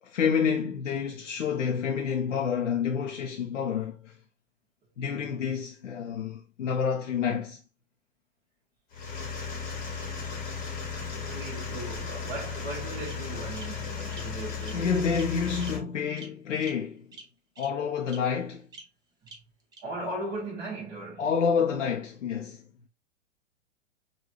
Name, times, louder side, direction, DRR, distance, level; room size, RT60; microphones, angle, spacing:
voice 1, 0.0-4.2 5.0-7.6 14.7-17.1 17.6-18.7 21.2-22.6, left 6 dB, 80° left, 0.6 m, -28 dB
sound 1, 8.9-15.8, left 6 dB, 20° left, 1.1 m, -35 dB
voice 2, 9.9-15.1 19.2-19.3 19.8-21.3, right 2 dB, 30° right, 1.3 m, -39 dB
Bird vocalization bird call bird song, 11.6-12.4 13.0-13.1 13.5-13.6 14.1-14.2 14.6-14.8 15.1-15.3 15.6-15.7 16.2-16.3 16.6-16.7 17.1-17.2 17.6-17.7 18.1-18.2 18.7-18.8 19.3-19.4 19.7-19.8, right 4 dB, 10° right, 0.4 m, -46 dB
3.8 x 2.3 x 2.9 m
figure-of-eight pair, 105°, 37 cm